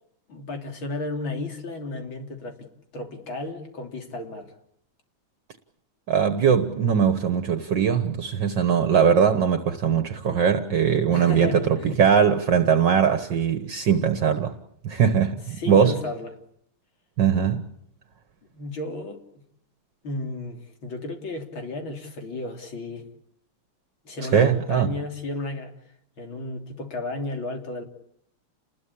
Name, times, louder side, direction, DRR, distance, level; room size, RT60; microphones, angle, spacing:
voice 1, 0.3-4.5 11.1-12.0 15.5-16.3 18.4-19.2 20.0-23.1 24.0-25.7 26.2-27.8, left 2 dB, 75° left, 4.0 m, -33 dB
voice 2, 6.1-14.5 14.8-15.9 17.2-17.6 24.3-24.9, right 7 dB, 60° right, 2.0 m, -21 dB
29.5 x 21.0 x 8.6 m
omnidirectional pair, 2.2 m